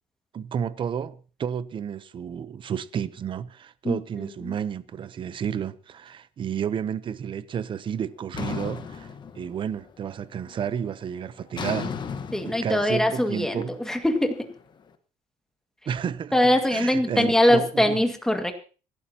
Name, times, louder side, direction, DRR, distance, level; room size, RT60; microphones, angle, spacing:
voice 1, 0.3-9.1 9.4-11.9 12.4-13.8 15.9-16.3 16.7-18.0, right 8 dB, 40° right, 0.8 m, -31 dB
voice 2, 3.8-4.5 12.3-14.5 16.3-18.5, left 1 dB, 5° left, 2.0 m, -22 dB
sound 1, 8.3-9.9 10.2-10.7 11.5-14.6, left 6 dB, 35° left, 1.2 m, -36 dB
26.0 x 12.0 x 2.9 m
cardioid pair, 130°, 13 cm